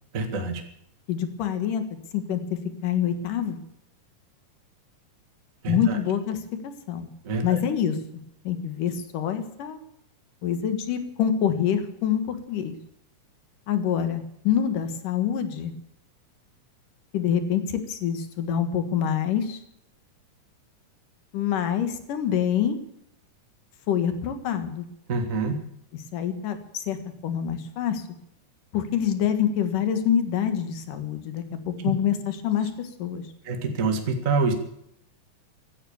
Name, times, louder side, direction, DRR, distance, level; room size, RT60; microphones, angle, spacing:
voice 1, 0.1-0.6 5.6-6.0 7.2-7.6 25.1-25.6 33.5-34.5, right 4 dB, 30° right, 5 dB, 1.7 m, -26 dB
voice 2, 1.1-1.8 2.1-2.4 2.8-3.6 5.7-6.4 6.9-7.1 7.4-8.0 8.4-9.8 10.4-12.7 13.7-15.7 17.1-19.6 21.3-22.8 23.9-24.9 26.1-27.0 27.2-28.0 28.7-33.2, left 9 dB, 85° left, 9 dB, 3.2 m, -26 dB
16.0 x 12.0 x 7.1 m, 0.74 s
omnidirectional pair, 3.7 m